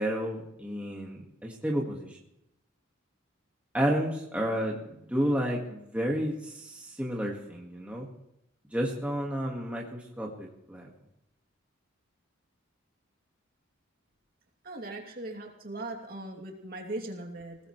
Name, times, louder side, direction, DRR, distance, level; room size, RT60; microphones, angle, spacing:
voice 1, 0.0-2.1 3.7-8.1 8.7-10.9, equal, 5° right, -2 dB, 1.9 m, -31 dB
voice 2, 14.6-17.6, right 2 dB, 45° right, 1 dB, 2.8 m, -39 dB
21.0 x 18.0 x 3.3 m, 0.80 s
head